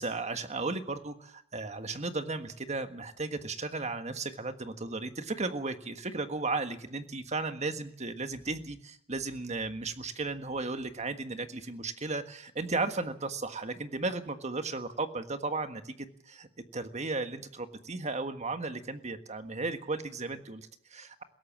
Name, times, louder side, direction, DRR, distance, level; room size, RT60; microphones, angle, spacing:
voice 1, 0.0-16.5 16.7-21.2, right 3 dB, 30° right, 9 dB, 1.5 m, -35 dB
21.0 x 17.0 x 7.5 m, 0.65 s
head